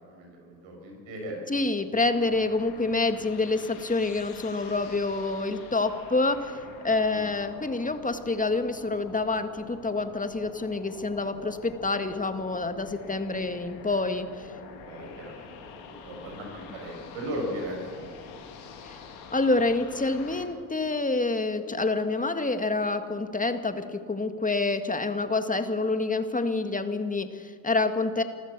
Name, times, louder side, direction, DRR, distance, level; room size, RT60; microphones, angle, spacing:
voice 1, 0.0-1.4 7.0-7.2 14.6-18.6, equal, 70° right, 0 dB, 6.4 m, -38 dB
voice 2, 1.5-6.6 6.8-14.5 18.8-19.0 19.3-28.2, left 3 dB, 15° left, 8 dB, 2.0 m, -27 dB
sound 1, 2.1-20.5, left 5 dB, 85° left, 2.6 m, -46 dB
28.0 x 14.0 x 6.9 m, 2.2 s
hypercardioid pair, 55°, 48 cm